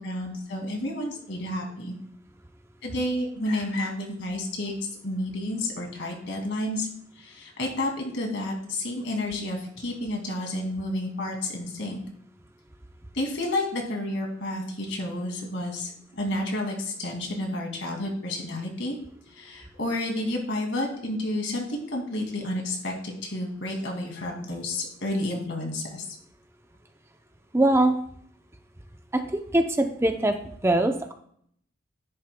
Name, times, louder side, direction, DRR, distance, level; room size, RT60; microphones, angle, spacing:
voice 1, 0.0-1.9 2.8-4.8 5.0-6.9 7.2-12.0 13.1-19.0 19.4-26.0, left 1 dB, 70° left, 1 dB, 2.3 m, -30 dB
voice 2, 27.5-28.0 29.1-31.1, right 1 dB, 15° right, 5 dB, 0.6 m, -23 dB
10.5 x 10.0 x 2.2 m, 0.65 s
head